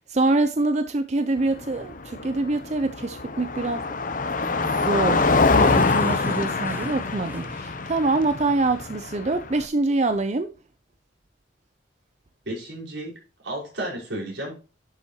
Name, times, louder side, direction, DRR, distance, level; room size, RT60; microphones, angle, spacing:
voice 1, 0.1-3.8 4.6-10.5, right 2 dB, 40° right, 0.6 m, -25 dB
Car passing by, 1.4-9.7, left 3 dB, 45° left, 0.8 m, -24 dB
Explosion / Shatter, 5.5-8.3, right 1 dB, 10° right, 1.0 m, -40 dB
voice 2, 12.5-13.2 13.4-14.5, right 1 dB, 80° right, 5.3 m, -32 dB
11.0 x 7.3 x 3.0 m
head